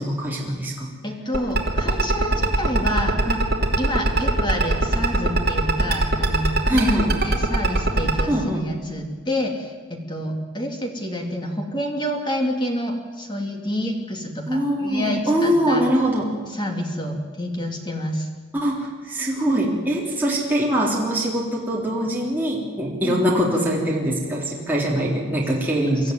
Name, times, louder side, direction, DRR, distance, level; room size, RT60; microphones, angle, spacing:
voice 1, 0.0-0.9 6.7-7.1 8.3-8.7 14.5-16.3 18.5-26.1, equal, 10° right, -4 dB, 3.4 m, -23 dB
voice 2, 1.0-3.4 3.8-6.9 7.2-15.8 16.5-18.3 23.0-23.2 25.8-26.1, equal, 20° left, 2 dB, 2.6 m, -28 dB
sound 1, 1.3-8.2, right 2 dB, 50° right, 2.7 m, -19 dB
24.5 x 13.5 x 9.6 m, 1.4 s
head